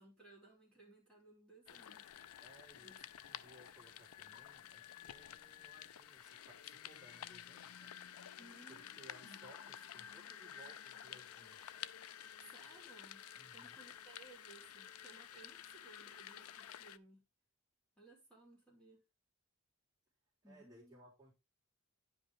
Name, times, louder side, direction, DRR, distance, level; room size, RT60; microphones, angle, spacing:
voice 1, 0.0-2.4 2.8-3.0 8.4-9.4 12.4-13.3 13.5-17.2 18.0-19.0 20.4-21.0, right 2 dB, 5° left, 3.7 m, -61 dB
sound 1, 1.7-17.0, left 10 dB, 75° left, 0.5 m, -52 dB
voice 2, 2.4-8.3 8.7-11.8 13.3-13.8 20.4-21.3, right 1 dB, 15° right, 3.5 m, -62 dB
10.0 x 5.5 x 3.6 m
head